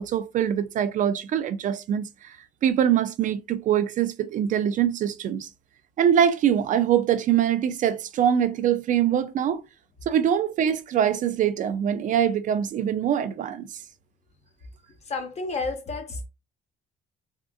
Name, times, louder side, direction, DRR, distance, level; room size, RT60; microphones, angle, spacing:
voice 1, 0.0-2.4 2.6-5.5 6.0-9.6 10.1-13.7, right 9 dB, 50° right, 0.4 m, -23 dB
voice 2, 15.0-16.3, left 3 dB, 40° left, 0.9 m, -31 dB
3.6 x 2.4 x 2.3 m
cardioid pair, 110°, 17 cm